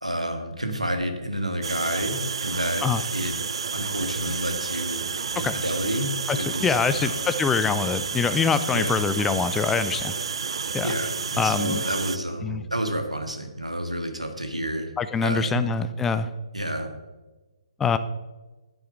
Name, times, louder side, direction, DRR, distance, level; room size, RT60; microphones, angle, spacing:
voice 1, 0.0-2.8 3.1-3.3 3.7-5.1 5.4-7.2 8.7-9.0 10.8-14.9 15.2-15.8 16.5-16.9, equal, 85° right, 5 dB, 1.7 m, -29 dB
sound 1, 1.6-12.2, right 5 dB, 55° right, 0.4 m, -31 dB
voice 2, 6.3-10.1 10.7-10.9 11.4-11.8 12.4-12.6 15.0-16.3 17.8-18.0, left 5 dB, 10° left, 12 dB, 0.4 m, -24 dB
8.8 x 8.5 x 4.5 m, 1.2 s
figure-of-eight pair, 135°, 3 cm